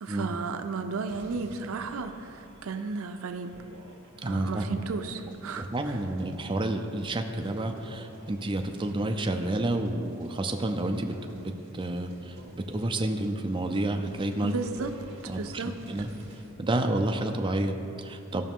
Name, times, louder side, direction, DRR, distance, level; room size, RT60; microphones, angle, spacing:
voice 1, 0.0-3.5 4.2-6.0 14.4-14.9 15.3-15.7, right 4 dB, 75° right, 7 dB, 0.5 m, -34 dB
sound 1, 1.1-16.5, right 1 dB, 55° right, 2.3 m, -51 dB
voice 2, 4.2-4.8 5.6-11.1 11.4-14.5 15.3-15.6 15.9-16.1 16.6-18.5, right 1 dB, 25° right, 4 dB, 0.5 m, -30 dB
15.5 x 5.8 x 3.7 m, 2.7 s
head